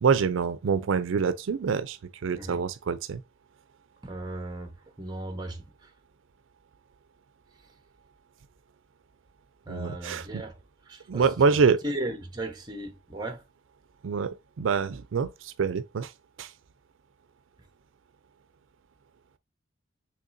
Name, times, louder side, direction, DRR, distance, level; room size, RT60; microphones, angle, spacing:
voice 1, 0.0-3.2 9.7-10.4 11.1-11.8 14.0-16.1 16.4-16.5, right 5 dB, 75° right, 0.4 m, -26 dB
voice 2, 4.0-4.7 5.0-5.6 9.7-10.5 10.9-11.2 11.8-13.4, right 1 dB, 20° right, 1.0 m, -36 dB
6.3 x 3.2 x 2.6 m
head